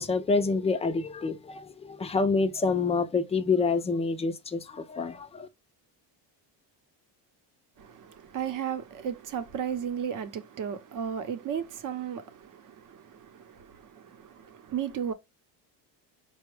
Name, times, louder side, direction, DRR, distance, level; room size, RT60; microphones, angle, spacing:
voice 1, 0.0-5.5, left 4 dB, 15° left, 0.4 m, -27 dB
voice 2, 7.8-15.1, right 8 dB, 45° right, 0.8 m, -35 dB
5.2 x 2.2 x 3.2 m
cardioid pair, 125°, 45 cm